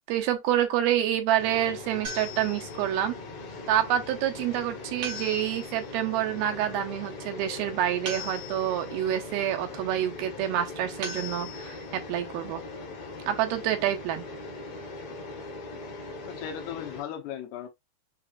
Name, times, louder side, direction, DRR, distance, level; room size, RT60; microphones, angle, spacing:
voice 1, 0.1-3.1 3.7-12.6 13.3-14.3, right 11 dB, 85° right, 2.5 m, -27 dB
sound 1, 1.4-17.0, left 3 dB, 60° left, 1.9 m, -41 dB
sound 2, 2.0-3.0 5.0-5.9 8.1-9.0 11.0-11.9, equal, 60° right, 1.5 m, -39 dB
voice 2, 16.3-17.7, left 10 dB, 85° left, 2.9 m, -37 dB
6.6 x 2.9 x 2.4 m
omnidirectional pair, 4.5 m